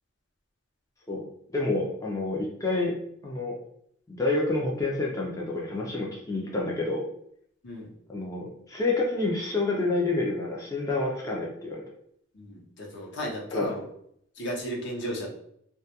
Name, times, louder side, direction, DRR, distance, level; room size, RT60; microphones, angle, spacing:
voice 1, 1.5-3.0 3.2-3.6 4.1-7.0 8.1-11.8 13.5-13.7, left 2 dB, 15° left, -3 dB, 0.3 m, -28 dB
voice 2, 12.3-13.9 14.3-15.3, equal, 60° left, -1 dB, 0.6 m, -35 dB
2.2 x 2.2 x 2.7 m, 0.70 s
head